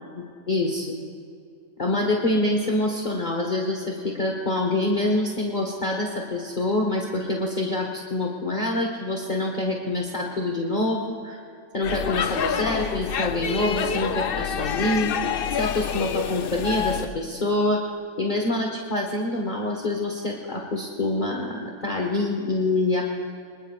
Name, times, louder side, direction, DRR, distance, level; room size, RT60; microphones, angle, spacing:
voice 1, 0.2-1.0 1.8-11.4 11.7-15.1 15.5-17.8 18.2-23.1, left 2 dB, 35° left, -1 dB, 1.5 m, -26 dB
Speech / Shout / Subway metro underground, 11.8-17.1, left 7 dB, 55° left, 0.6 m, -27 dB
25.5 x 20.5 x 2.5 m, 2.5 s
omnidirectional pair, 1.4 m